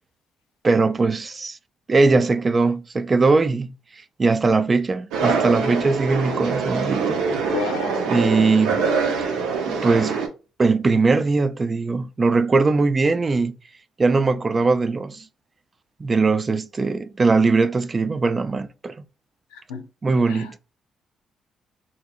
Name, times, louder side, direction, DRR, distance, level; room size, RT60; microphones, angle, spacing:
voice 1, 0.6-1.6 1.9-3.7 4.2-7.2 8.1-8.8 9.7-10.2 10.6-13.6 14.0-15.2 16.0-19.0 20.0-20.6, right 3 dB, 35° right, 0.3 m, -20 dB
sound 1, 5.1-10.3, right 5 dB, 75° right, 0.6 m, -24 dB
voice 2, 7.4-8.0 19.5-19.8 20.3-20.6, left 5 dB, 85° left, 0.4 m, -31 dB
2.9 x 2.7 x 2.3 m
hypercardioid pair, 55°, 0 cm